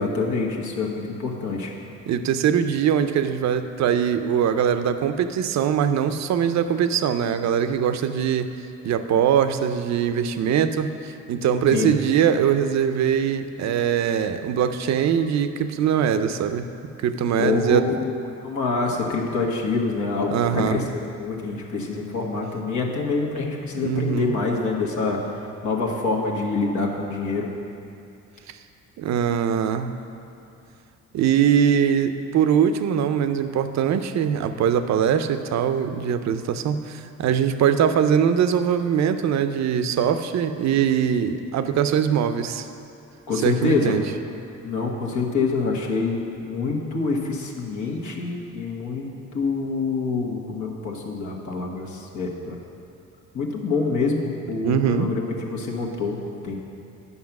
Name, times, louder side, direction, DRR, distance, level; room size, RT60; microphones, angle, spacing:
voice 1, 0.0-1.7 11.7-11.9 17.4-18.1 18.4-27.5 43.3-44.0 44.6-52.6 53.3-56.6, left 4 dB, 75° left, 0 dB, 1.4 m, -26 dB
voice 2, 2.1-8.5 8.8-16.7 17.0-17.9 20.3-20.8 23.8-24.4 28.5-28.6 29.0-29.9 31.1-42.7 43.4-44.0 54.6-55.1, right 8 dB, 65° right, 10 dB, 0.6 m, -22 dB
9.6 x 5.6 x 5.9 m, 2.7 s
cardioid pair, 90°, 30 cm